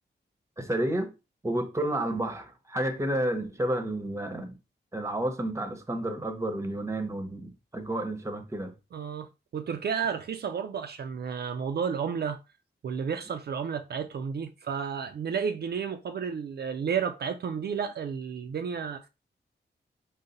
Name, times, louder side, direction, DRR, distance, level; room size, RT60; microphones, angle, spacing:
voice 1, 0.6-1.1 1.4-4.6 4.9-8.7, right 1 dB, 15° right, 0.7 m, -31 dB
voice 2, 8.9-12.4 12.8-19.1, right 6 dB, 60° right, 0.4 m, -32 dB
3.8 x 2.0 x 4.0 m
wide cardioid pair, 90°, 19 cm